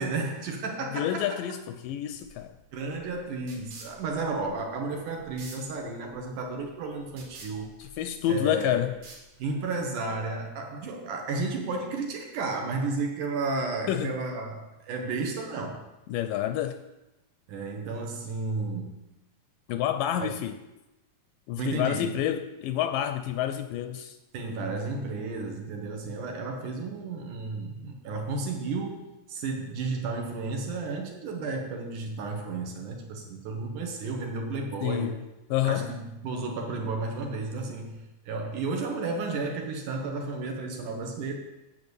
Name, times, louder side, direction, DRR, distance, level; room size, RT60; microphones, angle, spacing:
voice 1, 0.0-1.4 2.7-7.7 8.3-8.9 9.4-15.8 17.5-18.9 20.2-20.3 21.6-22.1 24.3-35.2 35.6-41.4, right 3 dB, 65° right, 2 dB, 2.5 m, -33 dB
voice 2, 0.9-2.6 8.0-8.9 13.9-14.1 16.1-16.8 19.7-20.5 21.5-24.2 34.8-35.2 35.5-35.9, left 11 dB, 80° left, 10 dB, 2.0 m, -28 dB
sound 1, 2.1-9.8, right 3 dB, 85° right, 3.7 m, -50 dB
9.0 x 5.6 x 8.0 m, 0.99 s
omnidirectional pair, 4.1 m